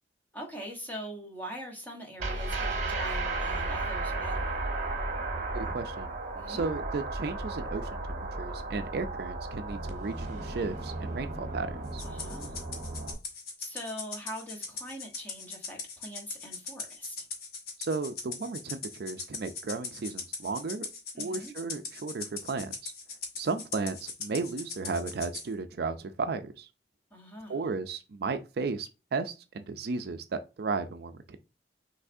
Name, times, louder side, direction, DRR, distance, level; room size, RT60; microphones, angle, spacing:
voice 1, 0.3-4.7 6.3-6.6 12.0-12.5 13.6-17.3 21.1-21.5 27.1-27.7, equal, 10° left, 1.2 m, -42 dB
sound 1, 2.2-13.1, right 2 dB, 45° right, 1.1 m, -34 dB
voice 2, 5.5-6.1 6.5-12.0 17.8-20.9 21.2-22.9 23.4-26.7 27.5-31.4, right 4 dB, 60° right, 0.4 m, -34 dB
Rattle (instrument), 12.0-25.5, left 4 dB, 55° left, 1.1 m, -40 dB
5.7 x 3.3 x 2.6 m
head